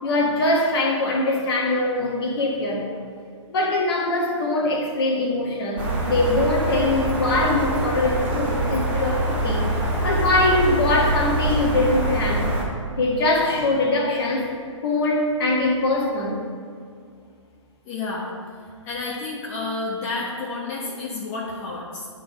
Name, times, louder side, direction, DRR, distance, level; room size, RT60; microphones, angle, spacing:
voice 1, 0.0-2.8 3.5-9.7 10.0-12.5 12.9-14.5 14.8-16.4, left 2 dB, 50° left, -1 dB, 1.8 m, -22 dB
sound 1, 5.8-12.6, right 1 dB, 10° right, 1.6 m, -24 dB
voice 2, 17.8-18.3 18.8-22.1, left 3 dB, 35° left, -5 dB, 1.3 m, -30 dB
10.0 x 3.9 x 4.7 m, 2.2 s
figure-of-eight pair, 130°, 16 cm